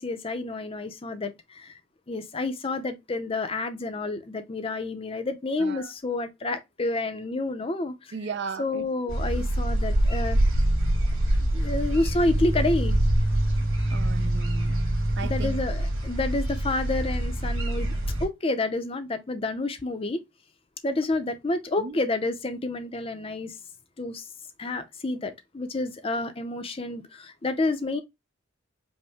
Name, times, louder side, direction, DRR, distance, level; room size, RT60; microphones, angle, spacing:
voice 1, 0.0-1.7 2.1-8.1 8.6-10.4 11.4-13.0 15.2-20.2 20.8-23.5 24.0-24.3 24.6-28.0, left 2 dB, 30° left, 0.5 m, -29 dB
voice 2, 5.6-5.9 8.1-8.8 9.4-9.5 13.9-14.8 15.2-15.6 21.8-22.0, right 5 dB, 55° right, 0.5 m, -36 dB
sound 1, 9.1-18.3, right 1 dB, 90° right, 1.8 m, -25 dB
5.2 x 2.1 x 3.4 m
head